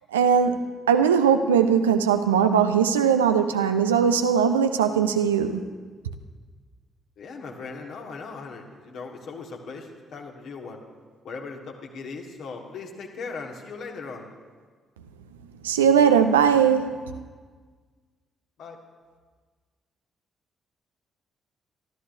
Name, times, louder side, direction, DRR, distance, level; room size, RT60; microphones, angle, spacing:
voice 1, 0.1-5.6 15.6-17.1, right 7 dB, 80° right, 8 dB, 0.5 m, -20 dB
voice 2, 7.2-10.8 11.2-14.3 18.6-18.8, left 4 dB, 60° left, 1 dB, 1.7 m, -38 dB
25.5 x 13.0 x 2.7 m, 1.5 s
figure-of-eight pair, 40°, 0 cm